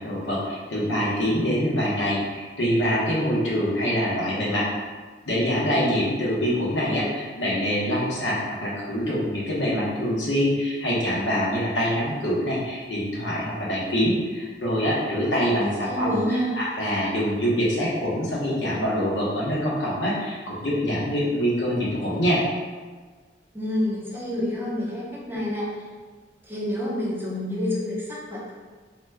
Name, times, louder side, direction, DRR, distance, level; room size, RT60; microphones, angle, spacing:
voice 1, 0.0-4.7 5.3-22.4, equal, 85° left, -5 dB, 0.8 m, -25 dB
voice 2, 15.6-16.5 23.5-25.7 26.4-28.5, left 1 dB, 10° right, -6 dB, 0.6 m, -28 dB
2.8 x 2.1 x 3.4 m, 1.4 s
head